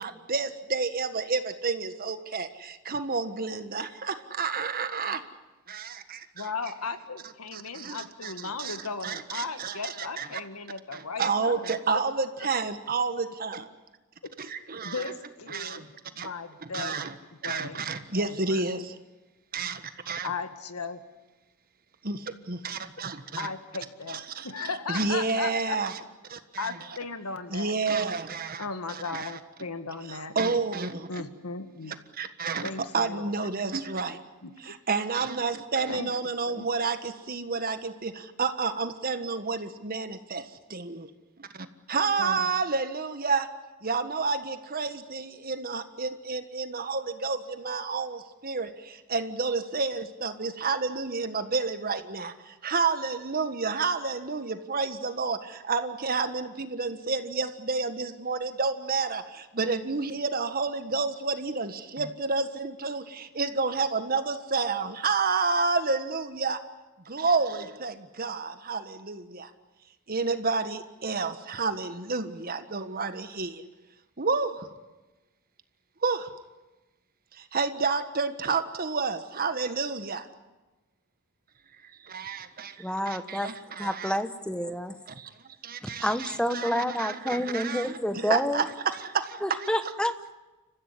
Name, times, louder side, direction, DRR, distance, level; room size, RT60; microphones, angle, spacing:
voice 1, 0.0-5.2 5.7-6.5 7.5-8.8 9.0-10.4 10.9-13.7 14.4-15.0 15.5-15.9 16.2-16.3 16.6-17.1 17.4-19.0 19.5-20.3 22.0-23.5 24.1-26.0 26.3-26.7 27.5-29.4 30.1-31.2 32.1-34.2 34.6-41.1 41.4-43.5 43.8-66.6 67.0-69.5 70.1-73.6 74.2-74.7 76.0-76.3 77.3-80.3 81.8-84.2 85.1-85.3 85.6-89.7, right 4 dB, 45° right, 10 dB, 1.5 m, -30 dB
voice 2, 6.4-12.0 12.4-12.5 14.8-15.9 16.1-17.0 17.4-17.8 18.1-18.7 20.2-21.0 23.4-25.8 26.6-27.8 28.6-30.4 31.1-32.0 32.6-33.5 34.4-34.8 35.9-36.1 36.5-36.7 42.2-42.5, left 4 dB, 90° left, 9 dB, 1.9 m, -36 dB
voice 3, 82.8-83.5 83.8-85.0 85.8-88.6 89.4-90.3, left 1 dB, 5° left, 10 dB, 1.1 m, -29 dB
29.5 x 15.0 x 9.8 m, 1.1 s
head